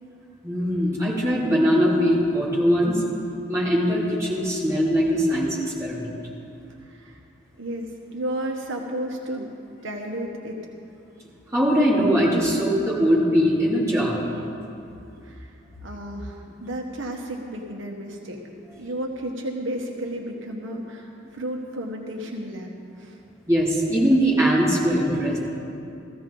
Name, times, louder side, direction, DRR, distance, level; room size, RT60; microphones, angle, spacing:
voice 1, 0.4-3.0 3.5-6.1 11.5-14.1 23.5-25.4, equal, 15° right, -7 dB, 2.7 m, -21 dB
voice 2, 6.8-7.2 7.6-9.5 9.8-10.7 15.2-15.5 15.8-18.4 18.8-22.7 23.0-23.2, right 1 dB, 80° right, 1 dB, 1.2 m, -32 dB
16.0 x 14.5 x 3.8 m, 2.6 s
head